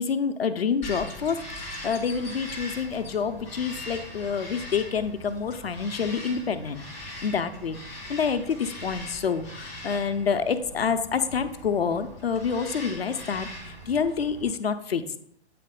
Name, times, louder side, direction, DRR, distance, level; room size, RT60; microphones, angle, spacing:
voice 1, 0.0-15.0, left 6 dB, 65° left, 9 dB, 0.7 m, -28 dB
Bird vocalization bird call bird song, 0.8-14.5, left 1 dB, 5° left, 0.4 m, -41 dB
8.5 x 3.4 x 3.7 m, 0.70 s
figure-of-eight pair, 120°, 33 cm